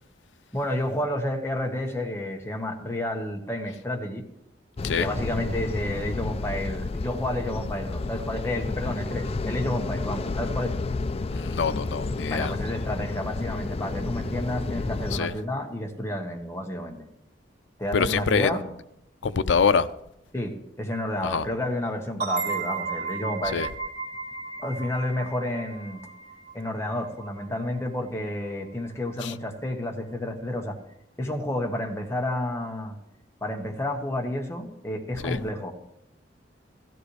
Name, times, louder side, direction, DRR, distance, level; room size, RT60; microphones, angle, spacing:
voice 1, 0.5-4.2 4.9-10.7 12.3-17.0 17.8-18.6 20.3-23.6 24.6-26.1 26.5-30.8 31.2-33.0 33.4-35.7, left 1 dB, 15° left, 1.4 m, -30 dB
sound 1, 4.8-15.2, left 3 dB, 35° left, 0.4 m, -31 dB
voice 2, 11.3-12.5 15.1-15.3 17.9-18.5 19.2-19.9 21.2-21.4 23.5-23.7 29.2-29.3 35.2-35.4, left 5 dB, 85° left, 0.5 m, -24 dB
sound 2, 22.2-27.6, right 5 dB, 40° right, 5.6 m, -34 dB
16.0 x 14.0 x 3.3 m
head